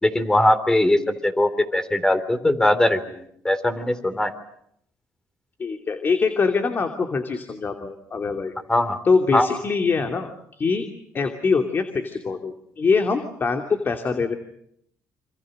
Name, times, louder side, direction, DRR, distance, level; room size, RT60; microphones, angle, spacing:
voice 1, 0.0-3.0 3.4-4.3 8.7-9.0 9.3-9.5, left 1 dB, 10° left, 11 dB, 3.6 m, -20 dB
voice 2, 5.6-8.5 9.0-10.8 11.1-14.4, left 4 dB, 40° left, 5 dB, 2.8 m, -23 dB
27.5 x 27.0 x 6.6 m, 0.72 s
cardioid pair, 90°, 6 cm